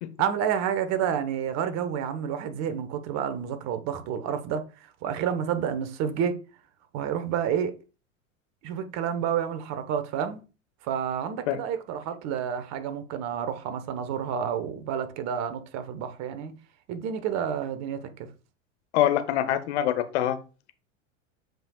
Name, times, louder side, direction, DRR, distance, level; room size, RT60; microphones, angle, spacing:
voice 1, 0.2-4.6 5.0-6.3 6.9-7.7 8.6-10.4 10.8-16.5 16.9-18.3, right 8 dB, 45° right, 1.1 m, -29 dB
voice 2, 18.9-20.4, left 11 dB, 60° left, 1.0 m, -24 dB
7.8 x 5.3 x 2.3 m
hypercardioid pair, 90°, 38 cm